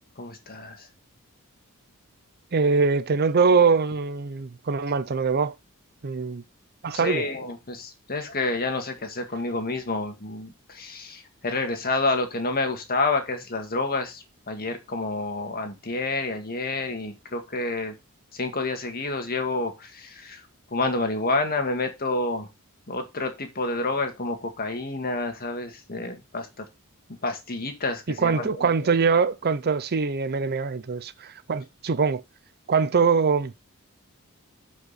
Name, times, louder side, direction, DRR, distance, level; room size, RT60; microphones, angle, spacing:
voice 1, 0.2-0.9 6.9-18.0 18.3-20.4 20.7-22.5 22.9-26.7 27.2-29.0, left 3 dB, 45° left, 2.0 m, -29 dB
voice 2, 2.5-5.5 6.0-6.4 6.8-7.2 28.1-32.2 32.7-33.5, right 5 dB, 45° right, 0.6 m, -23 dB
11.0 x 5.4 x 4.1 m
head